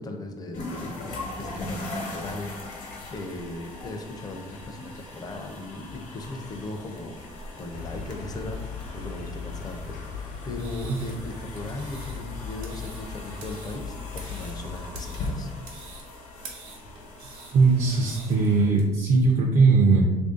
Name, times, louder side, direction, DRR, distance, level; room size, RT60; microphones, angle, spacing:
voice 1, 0.0-2.5 2.8-15.5, left 2 dB, 25° left, 4 dB, 0.5 m, -38 dB
sound 1, 0.5-19.4, left 2 dB, 70° left, 1.0 m, -40 dB
sound 2, 7.7-15.5, left 5 dB, 90° left, 0.7 m, -38 dB
sound 3, 10.4-18.8, right 4 dB, 90° right, 1.0 m, -47 dB
voice 2, 17.5-20.0, right 4 dB, 55° right, -2 dB, 0.5 m, -19 dB
3.1 x 2.6 x 3.7 m, 1.2 s
cardioid pair, 125°, 14 cm